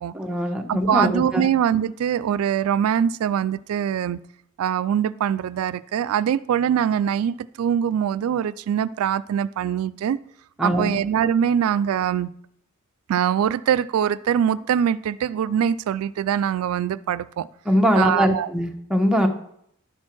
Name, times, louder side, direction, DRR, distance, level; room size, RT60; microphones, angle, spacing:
voice 1, 0.1-1.5 10.6-11.0 17.7-19.3, equal, 5° right, 3 dB, 0.9 m, -21 dB
voice 2, 0.7-4.2 4.6-10.2 10.6-12.3 13.1-17.5 17.9-18.5, right 9 dB, 90° right, 16 dB, 0.3 m, -23 dB
11.5 x 4.4 x 6.0 m, 0.71 s
head